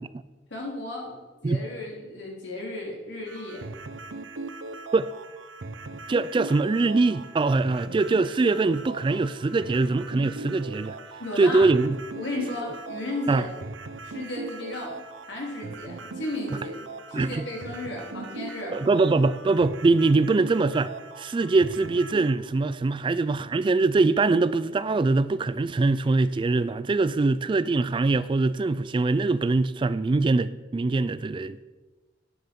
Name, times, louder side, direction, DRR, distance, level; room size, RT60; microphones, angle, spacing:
voice 1, 0.5-3.7 11.2-11.7 12.2-13.5 14.0-16.7 17.1-18.8, left 1 dB, 65° left, 3.5 m, -34 dB
sound 1, 3.3-22.3, right 3 dB, 90° right, 0.8 m, -39 dB
voice 2, 6.1-11.0 11.4-12.0 13.3-13.5 17.1-17.4 18.7-31.6, right 3 dB, 25° right, 0.3 m, -23 dB
12.0 x 9.7 x 5.2 m
head